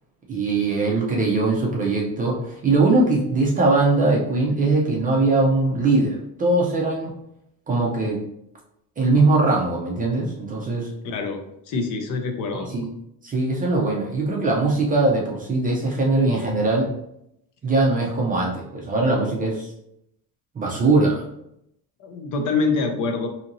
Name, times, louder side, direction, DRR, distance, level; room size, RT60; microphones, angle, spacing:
voice 1, 0.3-7.1 7.7-8.2 9.0-10.9 12.5-12.8 13.2-16.9 17.6-19.7 20.6-21.2, right 3 dB, 20° right, -3 dB, 0.4 m, -21 dB
voice 2, 11.0-12.7 22.0-23.3, left 4 dB, 50° left, 4 dB, 0.5 m, -25 dB
4.1 x 2.8 x 2.6 m, 0.79 s
cardioid pair, 165°, 40 cm